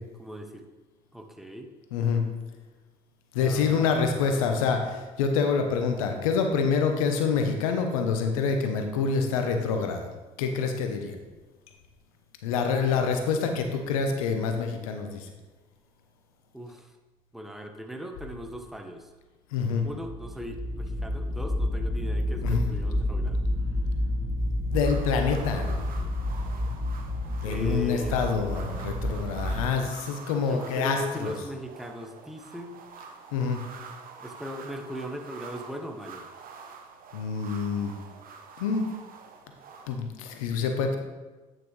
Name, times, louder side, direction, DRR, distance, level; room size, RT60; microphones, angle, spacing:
voice 1, 0.2-0.6 1.1-1.7 3.4-4.5 16.5-16.9 17.3-19.1 19.8-23.4 27.4-28.3 30.3-32.8 34.2-36.2, equal, ahead, 4 dB, 1.1 m, -39 dB
voice 2, 1.9-2.2 3.3-10.1 10.4-11.2 12.4-15.3 19.5-19.8 22.4-22.7 24.7-25.8 27.4-31.3 33.3-33.6 37.1-37.9 38.6-38.9 39.9-41.0, left 5 dB, 85° left, 5 dB, 0.9 m, -26 dB
sound 1, 19.9-29.7, left 1 dB, 75° right, 2.1 m, -29 dB
sound 2, 24.7-40.0, right 5 dB, 55° right, 0.9 m, -46 dB
9.2 x 5.9 x 3.3 m, 1.2 s
hypercardioid pair, 60°, 17 cm